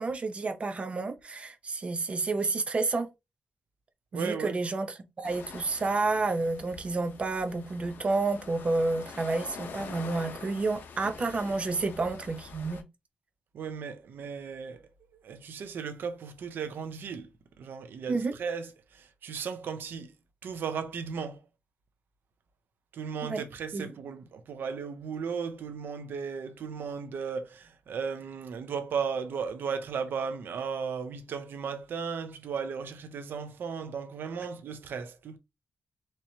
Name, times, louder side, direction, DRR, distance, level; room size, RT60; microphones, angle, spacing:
voice 1, 0.0-3.1 4.1-12.8 18.1-18.4 23.2-23.4 23.7-23.9, right 3 dB, 35° right, 0.7 m, -30 dB
voice 2, 4.1-4.6 13.5-14.8 15.2-17.3 17.6-20.1 20.4-21.4 22.9-35.4, right 6 dB, 85° right, 0.7 m, -35 dB
sound 1, 5.2-12.8, left 5 dB, 85° left, 0.7 m, -45 dB
4.4 x 3.1 x 2.7 m
wide cardioid pair, 130°, 3 cm